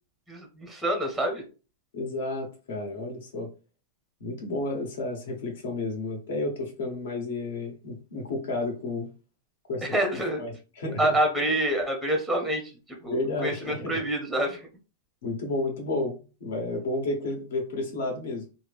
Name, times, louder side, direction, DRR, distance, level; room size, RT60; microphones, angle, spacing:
voice 1, 0.3-1.4 9.8-10.4 11.0-14.7, right 1 dB, ahead, 3 dB, 0.6 m, -27 dB
voice 2, 1.9-3.5 4.2-9.1 9.7-9.8 10.4-11.1 13.1-14.0 15.2-18.4, left 2 dB, 75° left, 2 dB, 1.3 m, -31 dB
3.0 x 2.1 x 3.4 m, 0.33 s
supercardioid pair, 160°, 0 cm